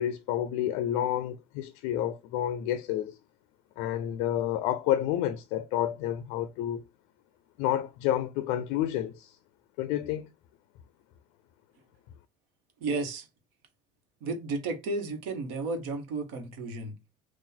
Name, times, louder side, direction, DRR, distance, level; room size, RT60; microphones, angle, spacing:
voice 1, 0.0-3.2 3.8-6.8 7.6-9.4 9.8-10.3, left 11 dB, 60° left, 0.4 m, -29 dB
voice 2, 12.8-13.3 14.2-16.9, right 3 dB, 85° right, 1.1 m, -33 dB
3.9 x 2.4 x 4.2 m
cardioid pair, 180°, 13 cm